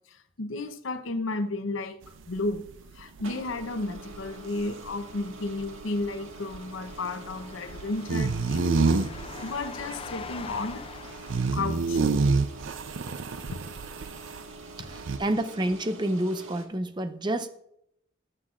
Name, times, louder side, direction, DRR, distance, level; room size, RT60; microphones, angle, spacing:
voice 1, 0.1-2.6 2.9-10.8 11.5-12.0 13.5-13.6, left 2 dB, 80° left, 8 dB, 0.8 m, -33 dB
sound 1, 2.0-14.5 14.8-15.2, right 4 dB, 70° right, 0.5 m, -29 dB
sound 2, 3.0-16.7, right 2 dB, 90° right, 1.6 m, -46 dB
sound 3, 6.0-12.2, left 5 dB, 30° left, 0.3 m, -44 dB
voice 2, 14.9-17.5, right 1 dB, 25° right, 10 dB, 0.6 m, -29 dB
19.0 x 7.7 x 2.4 m, 0.75 s
head